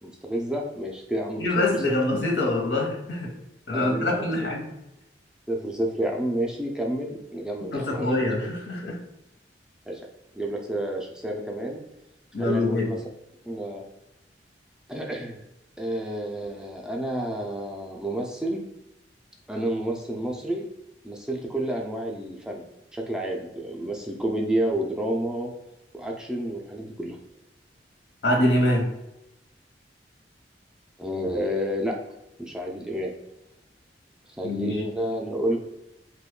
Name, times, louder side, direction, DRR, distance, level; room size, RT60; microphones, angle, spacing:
voice 1, 0.0-1.9 3.7-4.3 5.5-8.3 9.9-10.0 10.4-11.8 12.4-13.0 13.5-13.8 14.9-15.4 15.8-18.6 19.5-20.7 21.0-22.6 22.9-25.5 25.9-27.2 31.0-32.0 32.4-33.1 34.4-35.6, right 1 dB, 5° right, 0 dB, 0.3 m, -30 dB
voice 2, 1.4-3.3 3.7-4.7 7.7-9.0 12.3-12.9 28.2-28.9 34.4-34.8, left 1 dB, 80° left, -1 dB, 0.8 m, -24 dB
3.0 x 2.2 x 3.6 m, 0.89 s
head